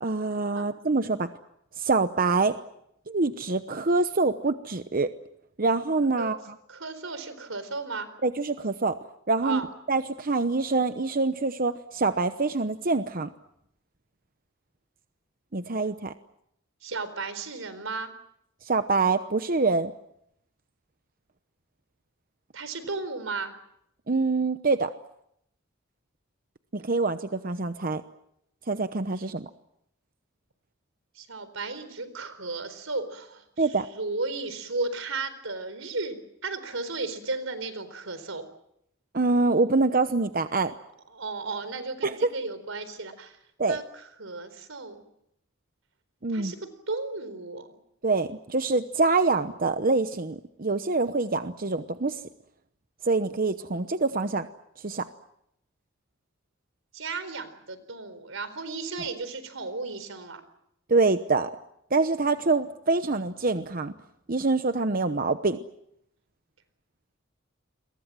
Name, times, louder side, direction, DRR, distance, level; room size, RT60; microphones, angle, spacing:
voice 1, 0.0-1.3 1.8-2.5 3.1-5.1 5.6-6.4 8.2-9.0 9.3-9.6 9.9-13.3 15.5-16.1 18.6-19.9 24.1-24.9 26.7-28.0 28.7-29.5 33.6-33.9 39.1-40.7 42.0-42.1 43.6-43.8 46.2-46.5 48.0-52.2 53.0-54.5 54.8-55.1 60.9-61.5 61.9-63.9 64.3-65.6, right 3 dB, 45° right, 10 dB, 0.9 m, -25 dB
voice 2, 6.7-8.1 9.4-9.7 16.8-18.1 22.5-23.5 31.1-38.4 41.1-43.4 43.7-45.0 46.3-46.6 46.9-47.7 56.9-60.4, right 3 dB, 90° right, 13 dB, 4.3 m, -34 dB
29.0 x 23.0 x 7.6 m, 0.77 s
head